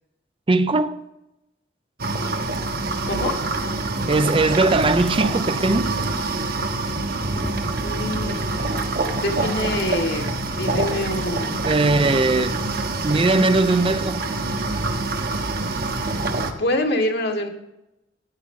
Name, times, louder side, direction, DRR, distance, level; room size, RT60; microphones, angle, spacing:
voice 1, 0.5-1.0 4.1-6.0 11.6-12.6 13.0-14.2, right 2 dB, 30° right, 0.5 m, -19 dB
sound 1, 2.0-16.5, right 2 dB, 55° right, 1.2 m, -26 dB
sound 2, 5.7-13.0, equal, 5° left, 0.9 m, -40 dB
voice 2, 7.8-11.6 16.6-17.5, left 1 dB, 65° left, 1.7 m, -26 dB
13.5 x 9.7 x 3.7 m
head